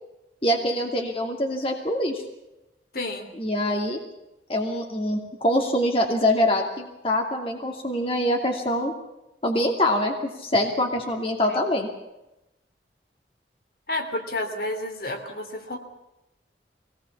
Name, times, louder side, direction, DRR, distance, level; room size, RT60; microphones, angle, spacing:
voice 1, 0.4-2.2 3.4-4.0 4.5-8.9 9.4-11.9, left 1 dB, 30° left, 2 dB, 2.6 m, -24 dB
voice 2, 2.9-3.3 11.5-11.6 13.9-15.8, left 1 dB, 55° left, 5 dB, 3.0 m, -30 dB
23.0 x 19.0 x 7.2 m, 0.93 s
head